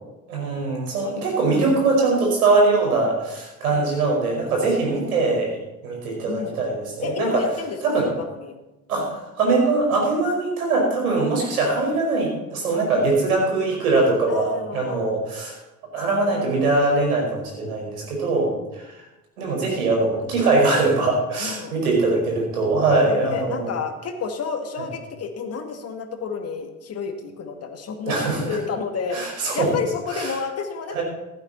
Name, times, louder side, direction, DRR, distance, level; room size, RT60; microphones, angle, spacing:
voice 1, 0.3-7.4 7.8-8.1 8.9-15.6 15.9-19.1 19.4-23.7 28.1-28.6 29.1-29.7 30.1-30.3 30.9-31.0, right 3 dB, 75° right, 0 dB, 5.1 m, -22 dB
voice 2, 6.3-6.6 7.0-8.5 14.3-15.1 18.3-18.8 21.4-21.7 22.9-28.2 28.5-31.0, left 5 dB, 35° left, 6 dB, 2.0 m, -30 dB
15.5 x 11.5 x 4.2 m, 1.0 s
figure-of-eight pair, 70°, 44 cm